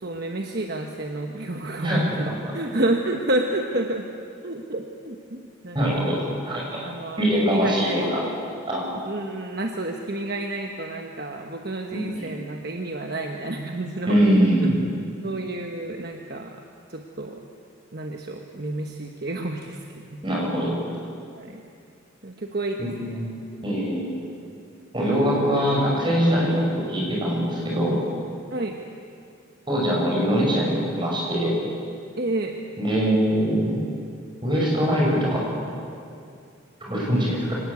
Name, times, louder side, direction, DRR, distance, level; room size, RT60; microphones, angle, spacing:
voice 1, 0.0-4.0 4.4-6.1 6.8-8.1 9.0-14.4 14.6-14.7 15.2-16.6 16.9-17.4 17.9-19.8 20.1-20.2 21.3-21.6 22.2-23.2 28.5-28.8 32.2-32.6, right 2 dB, 50° right, 3 dB, 1.2 m, -30 dB
voice 2, 5.7-6.8 7.2-8.2 8.7-8.9 11.9-12.3 14.1-14.8 20.2-20.8 22.8-23.3 23.6-24.2 24.9-28.0 29.7-31.6 32.8-33.8 34.4-35.4 36.8-37.5, equal, 25° right, -3 dB, 6.6 m, -22 dB
24.5 x 19.0 x 8.4 m, 2.4 s
head